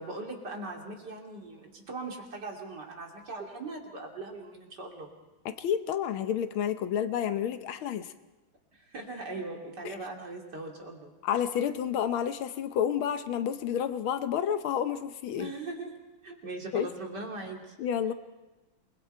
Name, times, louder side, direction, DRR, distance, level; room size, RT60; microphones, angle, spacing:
voice 1, 0.0-5.1 8.7-11.1 15.4-15.9 16.2-17.7, right 2 dB, 50° right, 0 dB, 3.4 m, -40 dB
voice 2, 5.4-8.1 9.8-10.0 11.2-15.5 16.7-16.9 17.8-18.1, left 9 dB, 80° left, 10 dB, 1.7 m, -30 dB
27.5 x 21.5 x 4.6 m, 1.1 s
omnidirectional pair, 2.3 m